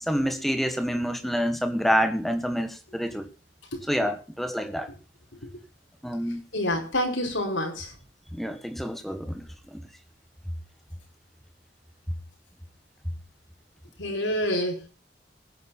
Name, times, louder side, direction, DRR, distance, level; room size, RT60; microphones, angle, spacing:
voice 1, 0.1-3.3 3.9-4.9 6.0-6.4 8.3-9.8, equal, ahead, 1.4 m, -27 dB
voice 2, 6.5-7.9 14.0-14.9, left 1 dB, 85° left, 5.1 m, -27 dB
20.5 x 9.3 x 4.2 m
head